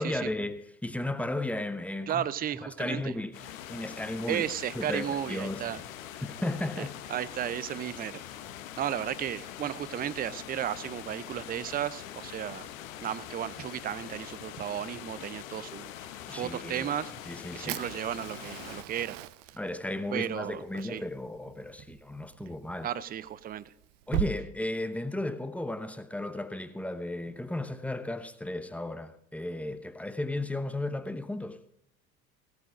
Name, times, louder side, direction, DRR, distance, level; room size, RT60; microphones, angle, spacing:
voice 1, 0.0-2.3 2.6-4.5 4.7-5.6 6.2-7.0 16.3-16.9 17.3-17.8 19.6-22.9 24.1-31.6, left 1 dB, 5° left, 0.9 m, -34 dB
voice 2, 2.1-3.1 4.3-5.8 6.8-8.2 8.8-12.7 13.0-19.2 20.1-21.0 22.4-22.5 22.8-23.7, right 10 dB, 20° right, 0.6 m, -34 dB
sound 1, 3.3-18.8, left 11 dB, 65° left, 1.0 m, -43 dB
Fire, 17.7-24.3, right 14 dB, 55° right, 0.8 m, -40 dB
16.5 x 8.4 x 5.0 m
figure-of-eight pair, 65°, 43 cm